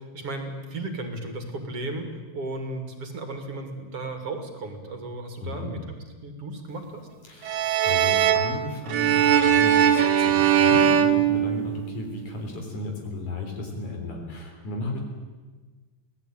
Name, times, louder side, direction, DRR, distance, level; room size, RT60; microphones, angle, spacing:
voice 1, 0.0-5.8 6.2-7.1, right 2 dB, 45° right, 6 dB, 3.3 m, -35 dB
voice 2, 5.4-5.7 7.2-15.0, left 2 dB, 60° left, 2 dB, 4.8 m, -34 dB
sound 1, 7.4-12.1, right 9 dB, 85° right, 3.0 m, -20 dB
24.5 x 17.5 x 9.1 m, 1.3 s
omnidirectional pair, 3.9 m